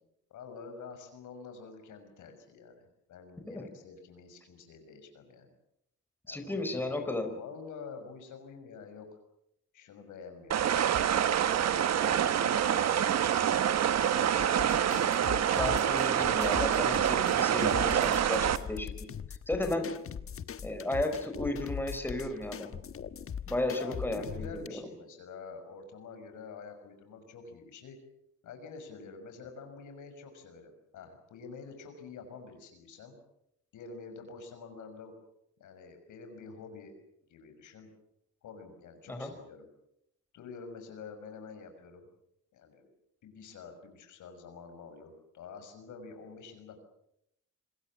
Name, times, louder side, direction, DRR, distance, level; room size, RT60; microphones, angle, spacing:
voice 1, 0.3-5.5 6.3-9.1 9.7-11.5 12.0-15.5 19.7-19.9 20.2-20.5 23.8-28.0 28.4-33.2 33.7-35.1 35.6-36.9 37.3-37.9 38.4-39.7 40.3-42.1 42.5-42.9 43.2-46.8, left 5 dB, 80° left, 7 dB, 6.0 m, -48 dB
voice 2, 6.3-7.3 15.6-19.1 19.5-19.8 20.6-22.7 23.5-24.8 39.1-39.3, left 2 dB, 5° left, 5 dB, 4.4 m, -34 dB
sound 1, 10.5-18.6, right 9 dB, 60° right, 1.4 m, -26 dB
sound 2, 14.4-24.7, left 7 dB, 45° left, 1.3 m, -41 dB
27.0 x 21.5 x 7.4 m, 0.78 s
cardioid pair, 90°, 30 cm